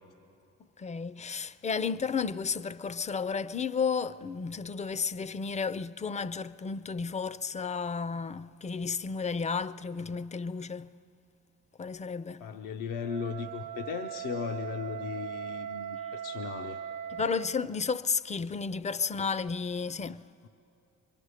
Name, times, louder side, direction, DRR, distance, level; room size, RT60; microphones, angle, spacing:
voice 1, 0.8-10.9 11.8-12.5 17.1-20.2, left 5 dB, 20° left, 0.4 m, -32 dB
voice 2, 12.4-16.8, left 6 dB, 85° left, 0.7 m, -37 dB
Wind instrument woodwind instrument, 13.0-17.6, right 9 dB, 90° right, 0.8 m, -39 dB
25.0 x 22.5 x 4.9 m
cardioid pair, 80°, 32 cm